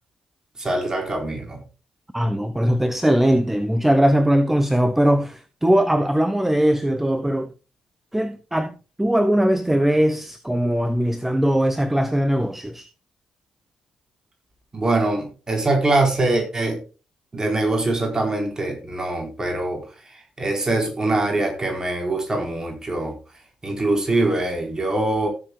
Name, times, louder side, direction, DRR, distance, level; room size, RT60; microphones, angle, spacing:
voice 1, 0.6-1.6 14.7-16.8 17.3-19.8 20.4-23.1 23.6-25.3, right 2 dB, 30° right, 4.1 m, -23 dB
voice 2, 2.1-7.5 8.1-8.7 9.0-12.9, equal, 10° right, 1.0 m, -20 dB
17.0 x 7.4 x 2.3 m
figure-of-eight pair, 40°, 2 cm